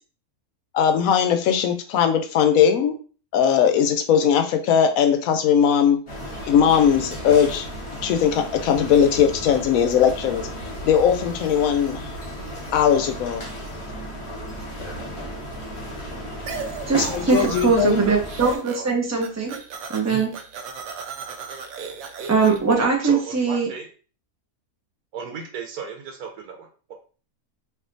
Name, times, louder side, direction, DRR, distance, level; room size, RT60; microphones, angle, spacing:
voice 1, 0.7-3.0 3.3-6.0 6.5-7.7 8.0-10.5 10.8-12.1 12.7-13.4 17.1-18.0, left 8 dB, 70° left, 7 dB, 0.9 m, -19 dB
sound 1, 6.1-18.6, equal, 25° left, 1.0 m, -34 dB
sound 2, 16.5-18.0 18.2-18.9 19.2-22.7, right 6 dB, 70° right, 1.0 m, -35 dB
voice 2, 16.8-19.6 19.9-20.3 22.3-23.7, right 4 dB, 20° right, 0 dB, 0.4 m, -21 dB
voice 3, 23.0-23.9 25.1-26.9, right 6 dB, 90° right, 3 dB, 1.2 m, -35 dB
4.5 x 2.7 x 2.5 m, 0.39 s
omnidirectional pair, 1.6 m